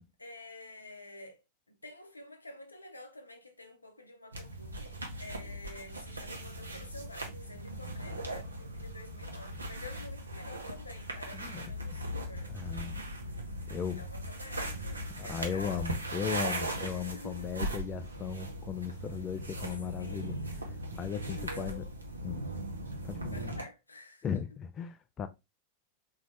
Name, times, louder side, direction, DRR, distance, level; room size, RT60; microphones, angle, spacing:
voice 1, 0.0-1.4 1.7-12.5 14.0-16.0 16.9-17.7 20.0-20.8 21.4-21.9 22.3-22.6 23.3-24.4, left 2 dB, 80° left, 0.7 m, -49 dB
sound 1, 4.3-23.6, right 1 dB, 80° right, 0.8 m, -39 dB
voice 2, 11.3-11.6 11.9-12.1 12.5-13.0 13.7-14.1 15.1-20.4 20.9-21.8 22.2-22.5 23.0-23.5 24.2-25.3, left 7 dB, 25° left, 0.4 m, -37 dB
4.0 x 2.7 x 3.3 m
figure-of-eight pair, 90°, 0 cm